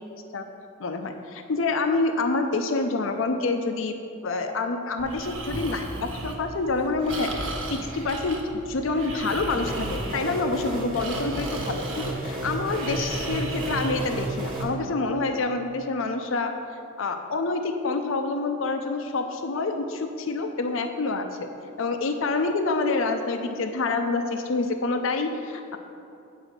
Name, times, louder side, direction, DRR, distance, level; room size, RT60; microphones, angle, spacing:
voice 1, 0.8-3.9 4.2-16.6 17.0-21.3 21.8-25.8, left 3 dB, 65° left, 6 dB, 0.5 m, -27 dB
Breathing, 5.0-14.7, right 2 dB, 65° right, 1.2 m, -36 dB
sound 1, 9.5-14.6, right 2 dB, 25° right, 1.5 m, -32 dB
8.9 x 4.8 x 6.6 m, 2.6 s
head